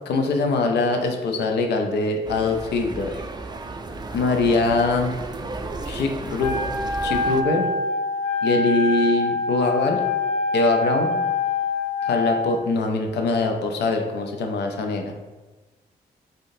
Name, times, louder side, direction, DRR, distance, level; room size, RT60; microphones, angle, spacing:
voice 1, 0.1-3.2 4.1-5.1 5.9-6.6 7.0-7.7 8.4-10.0 10.5-11.2 12.1-15.1, left 3 dB, 75° left, 3 dB, 0.5 m, -23 dB
sound 1, 2.2-7.4, right 3 dB, 25° right, 0.4 m, -33 dB
Wind instrument woodwind instrument, 6.4-12.6, left 3 dB, 5° left, 0.8 m, -25 dB
3.4 x 2.6 x 2.6 m, 1.2 s
supercardioid pair, 50°, 18 cm